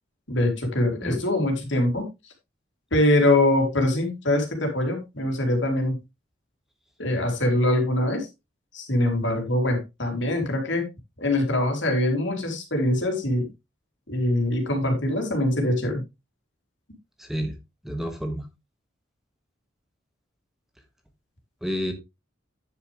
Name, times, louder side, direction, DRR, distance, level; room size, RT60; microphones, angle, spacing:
voice 1, 0.3-2.1 2.9-6.0 7.0-8.3 8.7-10.9 11.2-13.5 14.1-16.0, left 1 dB, 65° left, 3 dB, 3.4 m, -23 dB
voice 2, 17.2-17.5 17.8-18.4 21.6-21.9, equal, ahead, 4 dB, 1.4 m, -29 dB
10.0 x 7.1 x 3.4 m, 0.23 s
head